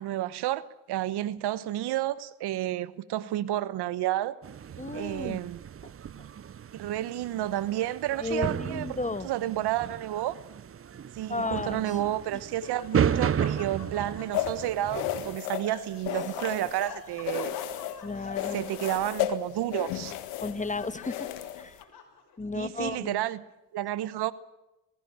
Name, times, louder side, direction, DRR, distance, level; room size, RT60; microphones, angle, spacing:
voice 1, 0.0-4.4 4.9-5.6 6.7-10.3 11.1-17.5 18.5-20.2 22.5-23.4 23.7-24.3, right 13 dB, 75° right, 1.1 m, -31 dB
sound 1, 4.4-15.4, right 8 dB, 35° right, 0.7 m, -34 dB
voice 2, 4.8-5.4 5.8-5.9 8.2-9.3 11.3-12.0 12.3-12.4 18.0-18.7 20.4-21.3 21.6-21.8 22.4-23.2, left 3 dB, 20° left, 1.3 m, -33 dB
Laughter, 12.0-22.5, left 6 dB, 65° left, 5.7 m, -47 dB
sound 2, 14.3-16.9 17.2-18.0 18.3-21.8, left 12 dB, 90° left, 1.7 m, -33 dB
20.0 x 16.5 x 8.8 m
supercardioid pair, 60°, 40 cm